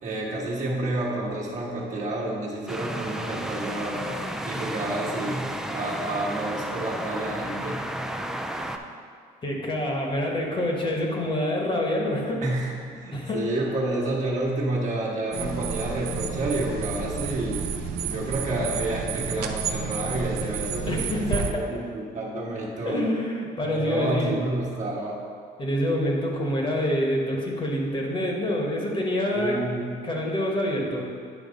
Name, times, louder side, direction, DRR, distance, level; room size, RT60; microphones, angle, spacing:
voice 1, 0.0-4.1 4.4-7.8 12.4-17.6 18.0-23.1 23.6-25.2 29.3-29.9, right 1 dB, 45° right, -3 dB, 1.3 m, -29 dB
sound 1, 2.7-8.8, right 1 dB, 5° right, 0.4 m, -32 dB
voice 2, 9.4-12.4 13.1-13.4 20.9-21.6 22.9-24.3 25.6-29.6 30.0-31.1, left 1 dB, 30° left, -1 dB, 1.3 m, -26 dB
sound 2, 15.3-21.5, right 7 dB, 75° right, 0.6 m, -31 dB
9.4 x 3.3 x 5.2 m, 2.2 s
cardioid pair, 110°, 17 cm